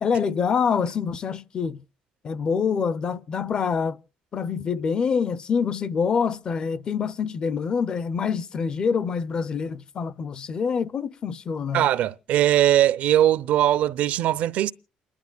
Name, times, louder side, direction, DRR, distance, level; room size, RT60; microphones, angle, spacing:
voice 1, 0.0-1.8 2.2-4.0 4.3-11.9, left 6 dB, 35° left, 0.6 m, -26 dB
voice 2, 11.7-14.7, right 12 dB, 65° right, 0.6 m, -20 dB
28.5 x 11.5 x 2.3 m
cardioid pair, 155°, 3 cm